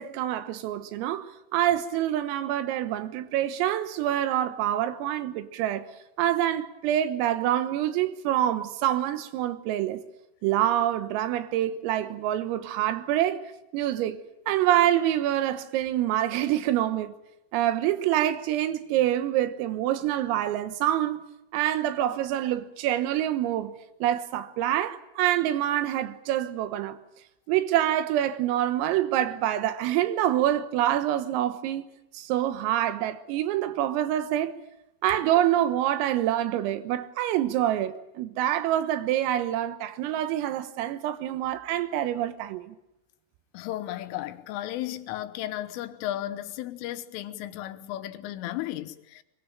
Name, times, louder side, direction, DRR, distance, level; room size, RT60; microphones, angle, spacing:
voice 1, 0.0-5.9 6.2-10.0 10.4-14.2 14.5-17.1 17.5-21.2 21.5-23.8 24.0-27.0 27.5-31.8 32.1-34.6 35.0-42.8, right 12 dB, 85° right, 3.9 m, -26 dB
voice 2, 43.5-49.2, left 14 dB, 80° left, 3.5 m, -34 dB
23.0 x 22.5 x 9.0 m
omnidirectional pair, 5.9 m